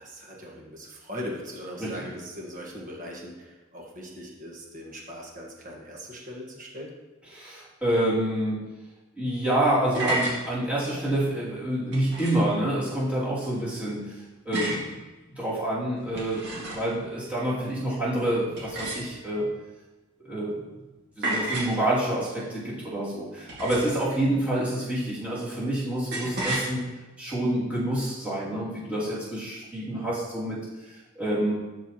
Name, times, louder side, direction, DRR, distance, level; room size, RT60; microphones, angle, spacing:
voice 1, 0.0-6.9, equal, 40° right, -1 dB, 1.5 m, -40 dB
voice 2, 7.3-8.7 9.2-14.2 14.4-15.0 15.3-19.5 20.2-20.6 21.2-26.8 27.2-31.5, right 1 dB, 5° right, -9 dB, 2.6 m, -27 dB
sound 1, 9.9-10.4 11.9-12.5 14.5-14.9 16.0-17.0 18.6-19.4 21.2-21.8 23.5-24.1 26.1-26.7, right 1 dB, 60° right, 2.1 m, -31 dB
12.0 x 4.6 x 3.0 m, 1.1 s
head